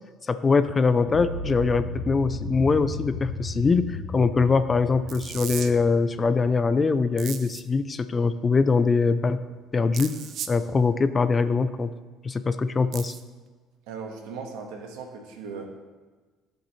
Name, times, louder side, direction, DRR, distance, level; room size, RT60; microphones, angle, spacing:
voice 1, 0.3-9.4 9.7-10.2 10.5-11.9 12.2-13.2, left 4 dB, 25° left, 12 dB, 0.5 m, -23 dB
sound 1, 1.0-7.1, left 2 dB, 85° left, 1.2 m, -35 dB
sound 2, 5.1-5.7 7.2-7.6 9.9-10.5 12.9-13.2, right 9 dB, 60° right, 0.8 m, -36 dB
voice 2, 13.9-15.7, right 5 dB, 85° right, 3 dB, 1.6 m, -38 dB
17.0 x 6.9 x 3.2 m, 1.3 s
cardioid pair, 100°, 0 cm